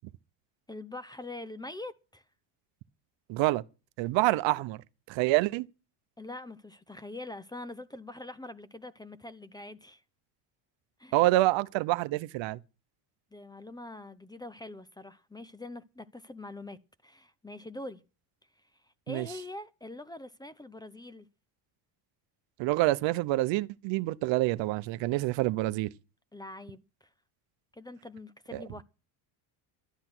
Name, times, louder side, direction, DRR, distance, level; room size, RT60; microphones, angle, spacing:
voice 1, 0.7-2.2 6.2-10.0 11.0-11.2 13.3-18.0 19.1-21.3 26.3-26.8 27.7-28.8, left 2 dB, 10° left, 0.7 m, -44 dB
voice 2, 3.3-3.6 4.0-4.8 5.1-5.7 11.1-12.6 19.1-19.3 22.6-25.9 28.5-28.6, right 19 dB, 65° right, 0.9 m, -27 dB
12.5 x 10.0 x 6.1 m
cardioid pair, 125°, 48 cm